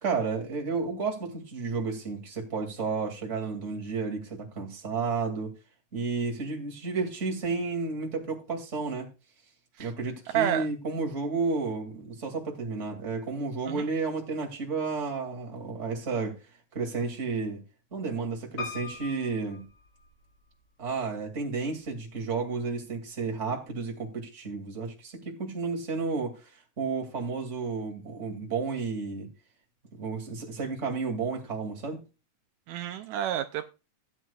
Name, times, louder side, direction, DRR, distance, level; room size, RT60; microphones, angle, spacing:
voice 1, 0.0-5.5 5.9-9.1 9.8-16.4 16.7-17.6 17.9-19.6 20.8-29.3 29.9-32.0, right 4 dB, 25° right, 2.4 m, -32 dB
voice 2, 10.3-10.7 13.7-13.9 32.7-33.7, right 11 dB, 80° right, 1.9 m, -29 dB
Piano, 18.6-20.6 21.2-21.9 22.2-22.3 22.5-22.6, left 4 dB, 65° left, 4.4 m, -41 dB
15.5 x 9.2 x 2.3 m
omnidirectional pair, 3.3 m